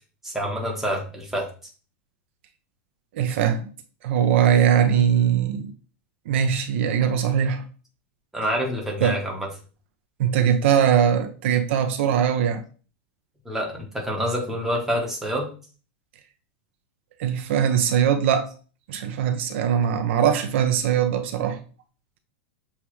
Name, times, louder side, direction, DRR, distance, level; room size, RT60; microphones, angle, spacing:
voice 1, 0.2-1.5 8.3-9.5 13.4-15.5, equal, 5° right, 1.1 m, -27 dB
voice 2, 3.1-3.7 4.0-5.7 6.3-7.7 9.0-9.2 10.2-12.6 17.2-18.5 18.9-21.6, right 8 dB, 65° right, 0.5 m, -21 dB
7.0 x 2.4 x 3.0 m
supercardioid pair, 155°, 7 cm